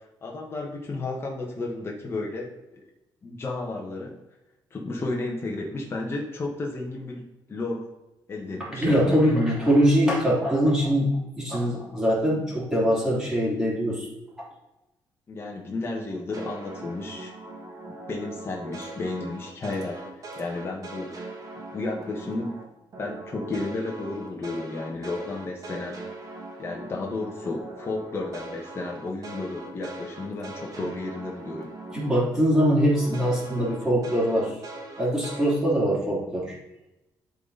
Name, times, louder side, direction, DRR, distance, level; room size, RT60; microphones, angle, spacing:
voice 1, 0.2-2.8 3.2-4.2 4.7-7.2 7.5-7.8 8.3-9.2 15.3-17.3 18.1-20.0 20.3-21.1 21.7-22.5 23.0-26.0 26.6-31.7, left 2 dB, 30° left, -1 dB, 1.2 m, -32 dB
voice 2, 8.6-14.1 14.4-14.5 31.9-34.6 35.0-36.6, equal, 5° right, -6 dB, 3.0 m, -23 dB
sound 1, 16.3-22.6 22.9-32.2 32.5-35.5, right 2 dB, 40° right, 1.7 m, -40 dB
11.5 x 4.1 x 4.0 m, 0.97 s
cardioid pair, 130°, 8 cm